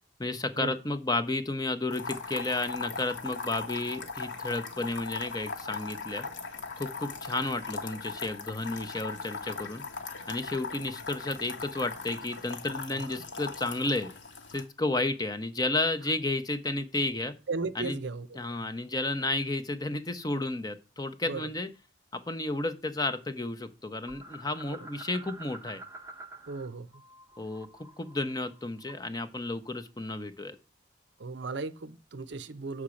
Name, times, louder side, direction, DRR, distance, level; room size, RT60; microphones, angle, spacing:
voice 1, 0.2-6.3 6.8-9.8 10.3-14.1 14.5-17.3 17.7-18.0 18.3-21.7 22.1-25.8 27.4-27.7 28.0-30.6, left 2 dB, 20° left, 0.7 m, -32 dB
sound 1, 1.9-14.6, left 4 dB, 70° left, 1.4 m, -39 dB
voice 2, 17.5-18.3 21.3-21.5 26.5-26.9 31.2-32.8, right 3 dB, 65° right, 0.6 m, -36 dB
sound 2, 24.1-26.7 26.9-29.2, right 2 dB, 15° right, 0.7 m, -48 dB
7.1 x 4.8 x 6.3 m
head